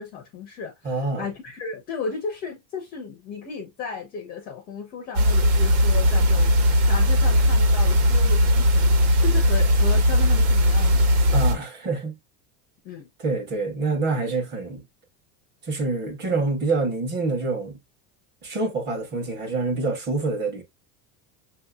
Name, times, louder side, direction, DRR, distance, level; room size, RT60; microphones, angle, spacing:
voice 1, 0.0-8.9 9.2-11.5 12.8-13.1, left 5 dB, 25° left, 0.4 m, -35 dB
voice 2, 0.8-1.3 11.3-12.2 13.2-14.8 15.6-17.8 18.4-20.6, right 3 dB, 25° right, 1.0 m, -26 dB
sound 1, 5.1-11.5, equal, 90° right, 1.6 m, -18 dB
6.3 x 2.7 x 2.3 m
cardioid pair, 175°, 42 cm